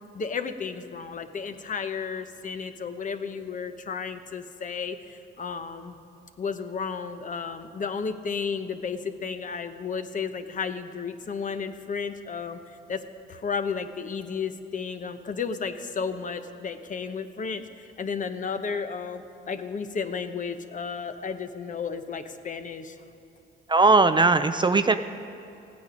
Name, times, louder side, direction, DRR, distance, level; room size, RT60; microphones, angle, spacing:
voice 1, 0.0-6.0 6.4-12.6 12.9-13.0 13.3-23.0, left 5 dB, 40° left, 9 dB, 0.8 m, -33 dB
voice 2, 23.7-24.9, right 3 dB, 25° right, 10 dB, 0.4 m, -19 dB
15.5 x 9.5 x 5.1 m, 2.7 s
cardioid pair, 90°, 20 cm